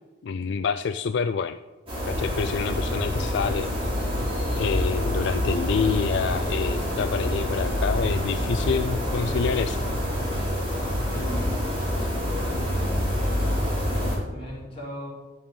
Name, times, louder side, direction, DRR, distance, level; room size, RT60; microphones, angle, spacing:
voice 1, 0.2-1.6 2.1-3.9 4.6-9.8, left 5 dB, 60° left, 10 dB, 0.3 m, -27 dB
sound 1, 1.9-14.2, equal, 25° right, 3.5 m, -26 dB
voice 2, 11.1-12.1 13.1-13.4 13.8-15.1, equal, 30° left, -7 dB, 4.4 m, -40 dB
12.5 x 7.8 x 5.4 m, 1.2 s
head